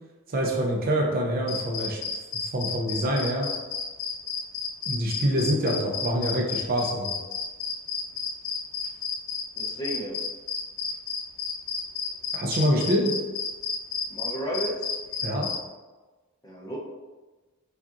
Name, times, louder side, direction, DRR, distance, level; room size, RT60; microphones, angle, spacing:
voice 1, 0.3-2.0 2.5-3.5 4.9-7.2 12.3-13.1 15.2-15.5, equal, 40° right, 0 dB, 0.5 m, -25 dB
sound 1, 1.5-15.6, left 5 dB, 85° left, 0.6 m, -31 dB
voice 2, 9.6-10.2 14.1-14.9 16.4-16.8, right 1 dB, 15° left, -3 dB, 0.7 m, -33 dB
4.7 x 2.4 x 2.8 m, 1.2 s
head